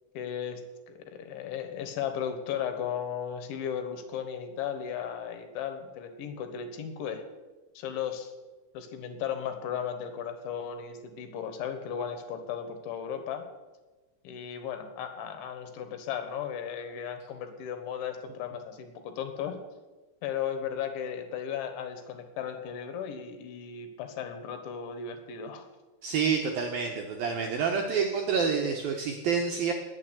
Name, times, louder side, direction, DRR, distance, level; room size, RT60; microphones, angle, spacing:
voice 1, 0.2-0.6 0.9-7.2 7.8-8.3 8.7-13.4 14.3-19.6 20.2-25.7, left 8 dB, 75° left, 7 dB, 3.7 m, -35 dB
voice 2, 26.0-29.7, right 6 dB, 75° right, 2 dB, 2.2 m, -28 dB
20.0 x 7.2 x 8.2 m, 1.2 s
omnidirectional pair, 5.6 m